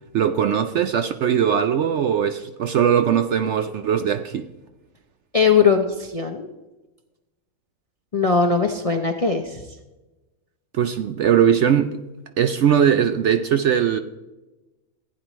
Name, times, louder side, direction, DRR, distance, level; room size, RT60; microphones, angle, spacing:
voice 1, 0.1-4.5 10.7-12.0 12.4-14.0, right 8 dB, 65° right, 0.7 m, -20 dB
voice 2, 5.3-6.5 8.1-9.7, left 5 dB, 40° left, 0.5 m, -20 dB
15.5 x 9.4 x 3.1 m
omnidirectional pair, 1.6 m